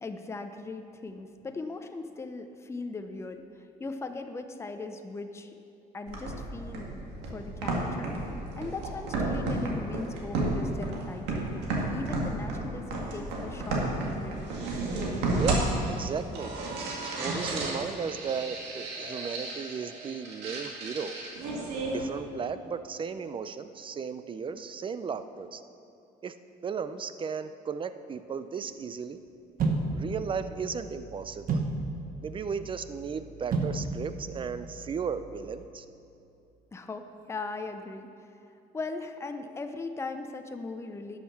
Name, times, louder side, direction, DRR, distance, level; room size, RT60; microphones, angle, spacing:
voice 1, 0.0-5.6 5.9-7.0 7.3-8.1 8.6-14.4 36.7-38.3 38.7-41.2, left 3 dB, 15° left, 6 dB, 0.6 m, -39 dB
sound 1, 6.1-22.1, right 2 dB, 90° right, 1.9 m, -32 dB
voice 2, 15.4-16.5 17.2-21.2 21.9-25.6 26.2-26.3 26.6-29.2 29.9-31.6 32.2-35.8, right 6 dB, 30° right, 11 dB, 0.5 m, -35 dB
sound 2, 29.6-35.7, right 3 dB, 55° right, 1.2 m, -34 dB
12.0 x 6.6 x 5.8 m, 2.7 s
cardioid pair, 110°, 17 cm